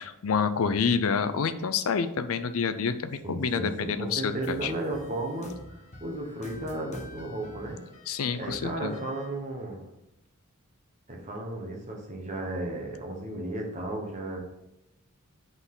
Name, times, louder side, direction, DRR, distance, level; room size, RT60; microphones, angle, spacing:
voice 1, 0.0-4.7 8.1-8.9, left 5 dB, 70° left, 11 dB, 0.5 m, -28 dB
voice 2, 3.2-7.8 8.4-9.8 11.1-14.4, right 1 dB, 35° right, 1 dB, 1.3 m, -34 dB
sound 1, 4.2-9.3, left 1 dB, 30° left, 0.9 m, -48 dB
8.1 x 4.0 x 3.8 m, 0.87 s
head